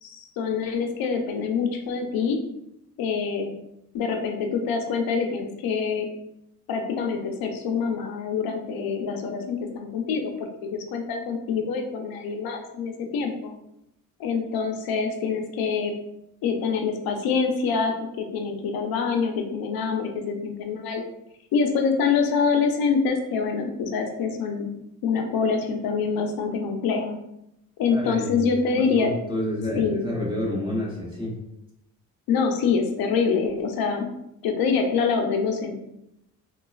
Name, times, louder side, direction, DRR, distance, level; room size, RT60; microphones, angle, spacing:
voice 1, 0.0-2.4 3.0-3.5 3.9-6.1 6.7-10.3 10.6-13.5 14.2-15.9 16.4-21.0 21.5-24.7 25.0-27.2 27.8-29.1 29.8-30.0 32.3-34.1 34.4-35.8, left 5 dB, 85° left, 4 dB, 0.6 m, -25 dB
voice 2, 27.9-28.5 28.7-31.3, left 1 dB, 15° right, -5 dB, 1.2 m, -29 dB
3.9 x 2.3 x 2.3 m, 0.84 s
cardioid pair, 110°, 35 cm